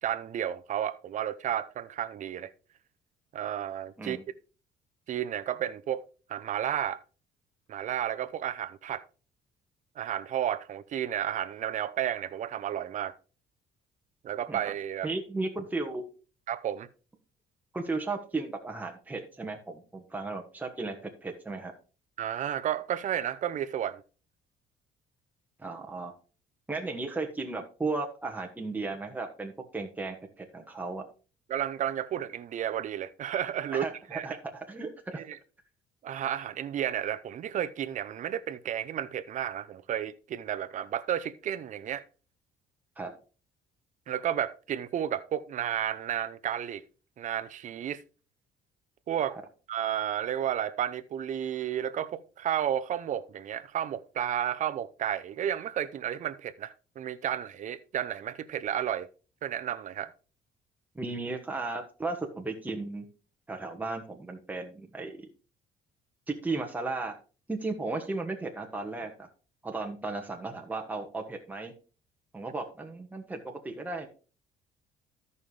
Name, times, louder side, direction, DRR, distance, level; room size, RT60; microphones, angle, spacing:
voice 1, 0.0-2.5 3.3-4.2 5.1-6.0 6.3-7.0 7.7-9.0 10.0-13.1 14.2-15.1 16.5-16.9 22.2-24.0 31.5-34.3 35.1-35.4 36.0-42.0 44.1-46.8 47.2-48.0 49.1-49.4 49.7-59.1 59.4-60.1, right 10 dB, 45° right, 0.7 m, -32 dB
voice 2, 15.0-16.0 17.7-21.0 21.2-21.7 25.6-26.1 26.7-31.0 33.7-35.2 43.0-43.1 49.3-49.4 60.9-63.1 63.5-65.3 66.3-67.1 67.5-69.3 69.6-71.7 72.3-74.1, right 3 dB, 10° right, 1.3 m, -35 dB
13.5 x 5.5 x 3.3 m
cardioid pair, 110°, 17 cm